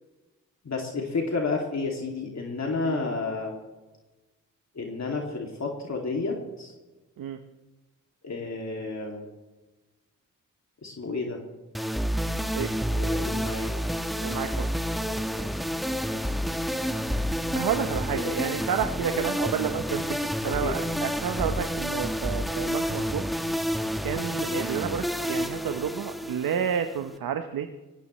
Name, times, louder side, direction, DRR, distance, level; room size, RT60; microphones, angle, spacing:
voice 1, 0.6-3.6 4.7-6.7 8.2-9.3 10.8-11.4 12.9-13.8 18.1-18.5 19.1-19.2 20.6-20.7 24.4-24.6, left 3 dB, 50° left, 0 dB, 2.5 m, -31 dB
sound 1, 11.7-27.1, equal, ahead, 1.1 m, -29 dB
voice 2, 14.2-14.7 17.5-23.3 24.0-27.7, right 8 dB, 85° right, 7 dB, 0.9 m, -30 dB
17.5 x 17.0 x 3.2 m, 1.2 s
cardioid pair, 55°, 34 cm